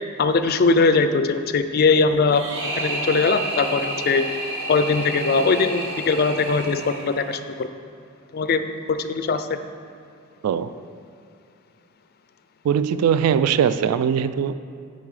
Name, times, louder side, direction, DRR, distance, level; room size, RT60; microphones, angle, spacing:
voice 1, 0.2-4.3 4.7-7.7 8.3-9.6, left 4 dB, 45° left, 10 dB, 0.3 m, -21 dB
sound 1, 2.3-7.4, right 1 dB, 55° right, 1.4 m, -30 dB
voice 2, 12.6-14.5, right 8 dB, 85° right, 15 dB, 0.3 m, -20 dB
8.6 x 5.5 x 4.8 m, 2.4 s
head